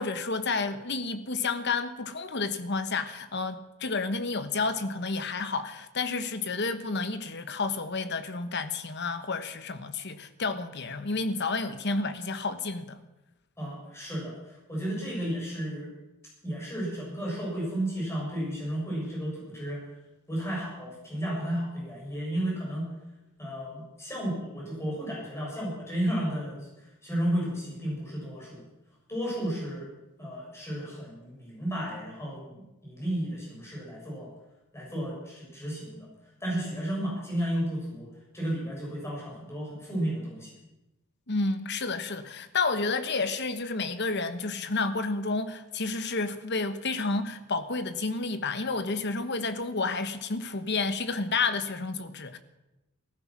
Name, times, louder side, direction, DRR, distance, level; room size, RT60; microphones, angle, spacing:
voice 1, 0.0-13.0 41.3-52.4, left 3 dB, 50° left, 1.2 m, -30 dB
voice 2, 13.6-15.9 16.4-19.8 20.3-22.9 23.4-26.6 27.0-28.6 29.1-29.9 30.2-34.3 34.7-36.1 36.4-38.1 38.3-40.5, right 1 dB, 10° left, 7.1 m, -33 dB
15.0 x 15.0 x 6.1 m
head